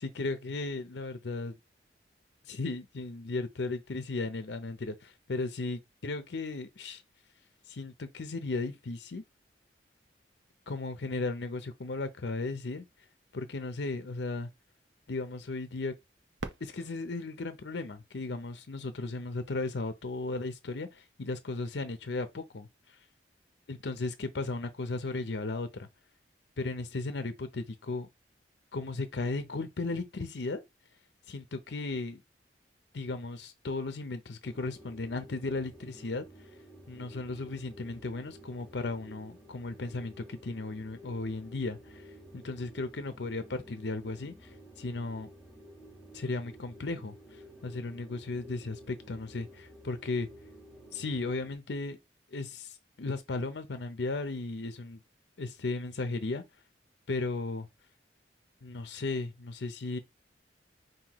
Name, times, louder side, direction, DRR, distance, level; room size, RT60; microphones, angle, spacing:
voice 1, 0.0-1.5 2.5-7.0 7.7-9.2 10.7-12.8 13.3-14.5 15.1-15.9 16.6-22.7 23.7-25.9 26.6-28.1 28.7-30.6 31.3-32.2 32.9-36.2 36.9-42.0 42.3-44.3 44.8-45.3 46.1-47.1 47.6-50.3 50.9-52.0 52.3-55.0 55.4-56.4 57.1-57.7 58.6-60.0, left 3 dB, 70° left, 0.6 m, -35 dB
Fireworks, 16.4-19.1 19.8-19.9 20.6-21.1 23.0-23.1, right 3 dB, 75° right, 0.7 m, -46 dB
sound 1, 34.4-51.5, right 1 dB, ahead, 1.3 m, -52 dB
5.6 x 2.8 x 3.0 m
head